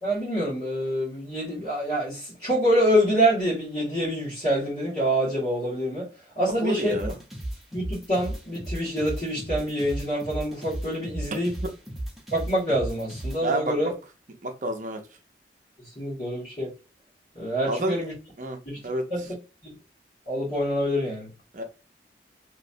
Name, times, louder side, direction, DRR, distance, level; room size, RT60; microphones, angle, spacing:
voice 1, 0.0-6.1 6.4-7.0 7.7-11.5 12.3-13.9 16.0-16.7 17.3-18.1 18.7-18.8 19.1-19.2 19.6-19.7 20.3-21.3, equal, 40° left, 1.9 m, -26 dB
voice 2, 6.6-7.1 13.4-13.9 14.4-15.0 17.6-18.0 18.4-18.6 18.8-19.0 21.5-21.6, right 1 dB, 45° right, 0.6 m, -29 dB
sound 1, 6.9-13.4, right 1 dB, ahead, 0.8 m, -35 dB
3.2 x 3.1 x 2.7 m
head